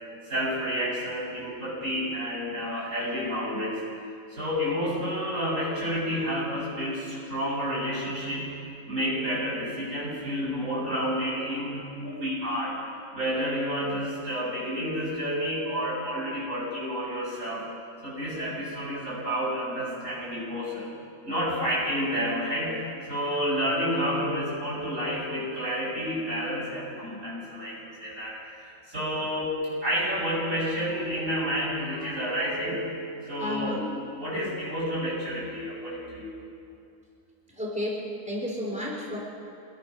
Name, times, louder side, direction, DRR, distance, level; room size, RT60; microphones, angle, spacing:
voice 1, 0.3-3.8 4.3-8.6 8.9-12.8 13.1-17.7 18.0-20.9 21.2-32.8 33.3-33.8 34.2-36.4, equal, 60° right, -6 dB, 8.3 m, -30 dB
voice 2, 33.4-33.9 37.6-39.2, left 1 dB, 5° right, -3 dB, 4.1 m, -32 dB
26.0 x 21.5 x 6.4 m, 2.5 s
omnidirectional pair, 1.5 m